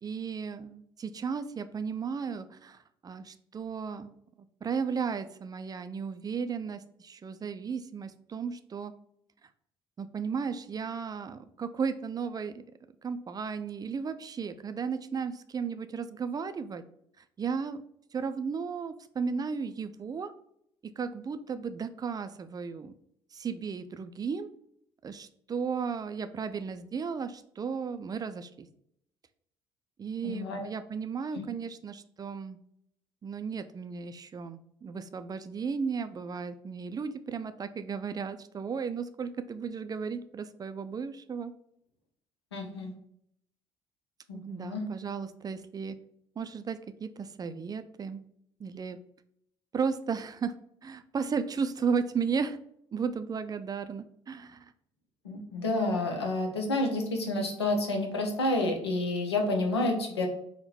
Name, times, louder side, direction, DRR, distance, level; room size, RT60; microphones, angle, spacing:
voice 1, 0.0-4.1 4.6-8.9 10.0-12.6 13.0-16.8 17.2-17.8 18.1-20.3 20.8-22.9 23.3-24.5 25.0-28.7 30.0-32.6 33.2-41.5 44.3-46.0 46.4-48.2 48.6-49.0 49.7-50.5 50.8-52.6 52.9-54.7, right 6 dB, 30° right, 10 dB, 0.3 m, -34 dB
voice 2, 30.2-30.7 31.3-31.4 42.5-42.9 44.3-44.8 55.2-60.3, left 2 dB, 90° left, 3 dB, 0.6 m, -29 dB
3.6 x 2.1 x 4.2 m, 0.71 s
hypercardioid pair, 50°, 13 cm